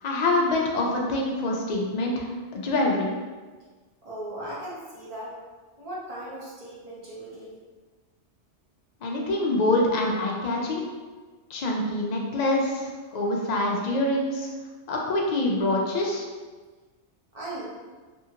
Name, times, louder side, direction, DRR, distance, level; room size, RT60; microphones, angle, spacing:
voice 1, 0.0-3.1 9.0-10.8 11.5-14.5 14.9-16.2, left 2 dB, 65° left, -1 dB, 0.4 m, -25 dB
voice 2, 4.0-5.3 5.8-7.6 17.3-17.6, right 1 dB, 40° right, -7 dB, 0.7 m, -37 dB
2.7 x 2.5 x 2.7 m, 1.4 s
omnidirectional pair, 1.2 m